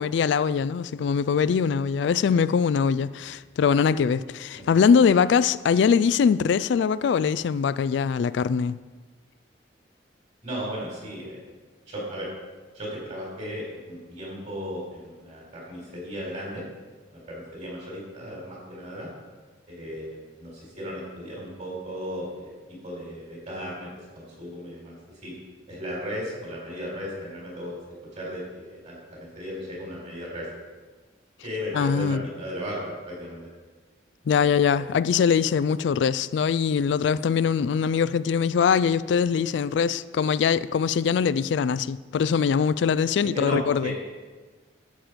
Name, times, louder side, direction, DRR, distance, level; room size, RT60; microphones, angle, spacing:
voice 1, 0.0-8.8 31.7-32.2 34.3-43.9, left 6 dB, 70° left, 0.3 m, -22 dB
voice 2, 10.4-11.4 11.9-12.3 12.7-16.6 17.1-19.1 19.7-22.6 22.8-23.9 24.1-25.3 25.7-27.8 28.2-30.5 31.4-33.5 34.4-35.0 43.3-44.0, equal, 40° right, 4.0 m, -35 dB
11.5 x 7.7 x 5.1 m
head